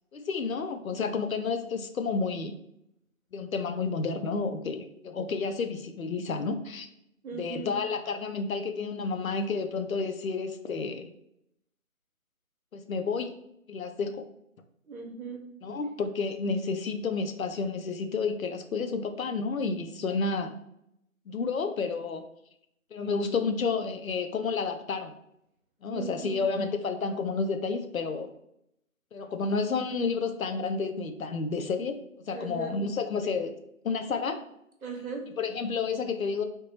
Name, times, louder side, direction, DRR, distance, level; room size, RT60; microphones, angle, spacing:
voice 1, 0.1-2.6 3.3-6.9 7.3-11.1 12.7-13.3 13.7-14.2 15.6-20.6 21.3-22.2 22.9-25.1 25.8-28.3 29.1-31.9 32.3-33.5 33.8-34.4 35.4-36.4, left 4 dB, 75° left, 7 dB, 0.5 m, -30 dB
voice 2, 7.2-7.7 14.9-15.4 25.9-26.4 32.3-32.8 34.8-35.3, right 4 dB, 80° right, 1 dB, 1.0 m, -38 dB
3.4 x 2.0 x 2.8 m, 0.77 s
figure-of-eight pair, 175°, 42 cm